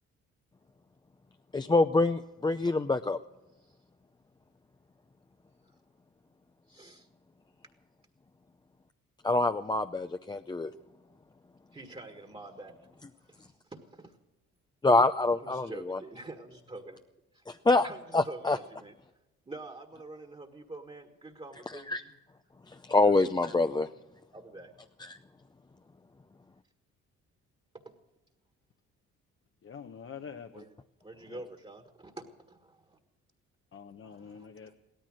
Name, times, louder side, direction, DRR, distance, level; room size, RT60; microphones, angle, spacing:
voice 1, 1.5-3.2 9.2-10.7 14.8-16.0 17.5-17.9 18.1-18.6 21.9-22.0 22.7-23.9 25.1-25.2, left 2 dB, 15° left, 8 dB, 0.5 m, -26 dB
voice 2, 6.7-7.1 11.7-12.8 13.3-14.2 15.4-17.0 17.3-17.4 17.8-18.9 19.5-21.9 23.0-23.1 24.3-24.7 30.5-30.7 31.0-33.0 34.0-34.8, right 2 dB, 20° right, 6 dB, 1.7 m, -46 dB
voice 3, 29.6-30.7 31.3-31.4 33.7-34.7, left 6 dB, 45° left, 6 dB, 1.0 m, -45 dB
16.5 x 13.5 x 6.3 m, 1.0 s
cardioid pair, 90°, 30 cm